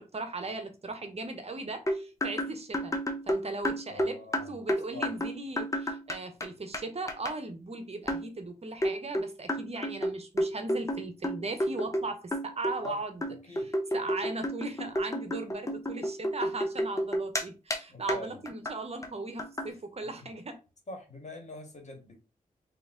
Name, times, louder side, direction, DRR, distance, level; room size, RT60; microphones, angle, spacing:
voice 1, 0.0-3.0 3.2-4.2 4.5-13.1 13.5-20.6, right 2 dB, 45° right, 1.0 m, -38 dB
sound 1, 1.9-6.5 6.7-6.8 7.1-7.3 8.1-8.3 8.8-12.1 12.3-12.9 13.2-17.4 17.7-17.8 18.1-18.2 18.5-18.7 19.0-19.1 19.4-19.7, equal, 20° left, 0.9 m, -31 dB
voice 2, 3.9-4.5 4.9-5.1 12.8-13.0 13.5-13.7 17.9-18.4 19.7-19.8 20.9-22.2, left 1 dB, 50° left, 1.8 m, -43 dB
3.8 x 3.0 x 3.7 m
cardioid pair, 55°, 15 cm